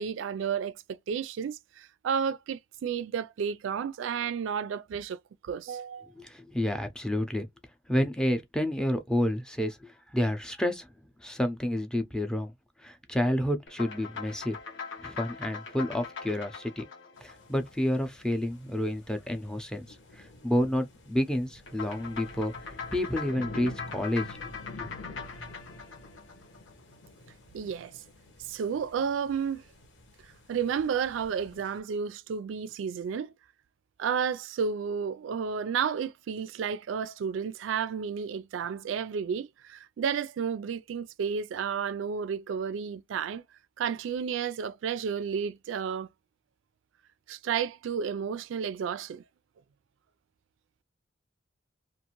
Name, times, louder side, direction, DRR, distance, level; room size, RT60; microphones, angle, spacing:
voice 1, 0.0-6.1 27.5-28.0 28.4-29.6 30.5-33.3 34.0-43.4 43.8-46.1 47.3-49.2, right 7 dB, 85° right, 0.3 m, -32 dB
voice 2, 6.2-7.5 7.9-10.9 11.2-12.5 12.8-14.6 15.0-16.8 17.2-19.9 20.2-22.5 22.9-24.3 24.7-24.9, left 1 dB, 5° left, 0.5 m, -29 dB
sound 1, 13.7-18.3 21.7-27.1, left 6 dB, 85° left, 1.0 m, -42 dB
sound 2, 17.2-31.8, left 1 dB, 65° left, 1.0 m, -48 dB
2.5 x 2.5 x 2.9 m
head